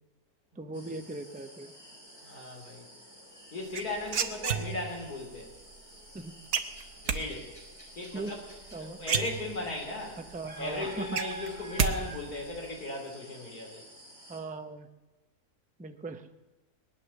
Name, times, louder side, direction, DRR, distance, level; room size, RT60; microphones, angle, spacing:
voice 1, 0.6-1.7 6.1-6.4 8.1-8.3 8.7-9.0 10.2-11.2 14.3-14.9 15.8-16.3, right 3 dB, 10° right, 7 dB, 0.4 m, -39 dB
sound 1, 0.7-14.4, right 1 dB, 40° left, 4.3 m, -49 dB
voice 2, 2.2-2.8 3.5-5.5 7.0-7.5 7.9-8.5 8.8-10.2 10.6-13.8, left 2 dB, 75° left, 0 dB, 3.6 m, -37 dB
sound 2, 3.7-5.1 6.5-7.2 8.6-8.7 9.0-9.9 10.3-10.4 10.7-11.9 12.2-12.7, right 6 dB, 65° right, 1.3 m, -30 dB
19.5 x 10.0 x 7.0 m, 1.1 s
omnidirectional pair, 1.6 m